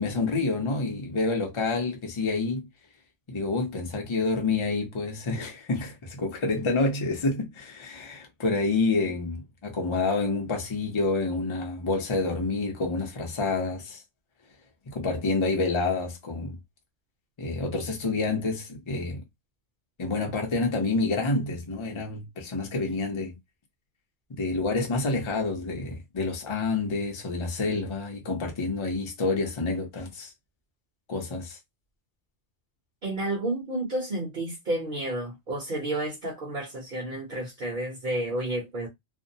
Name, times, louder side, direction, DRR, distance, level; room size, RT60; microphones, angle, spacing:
voice 1, 0.0-2.7 3.3-14.0 14.9-16.6 17.4-19.2 20.0-23.4 24.3-30.3 31.1-31.6, left 3 dB, 30° left, 0.6 m, -28 dB
voice 2, 33.0-38.9, right 1 dB, 50° right, 0.9 m, -31 dB
2.6 x 2.0 x 2.6 m
omnidirectional pair, 1.2 m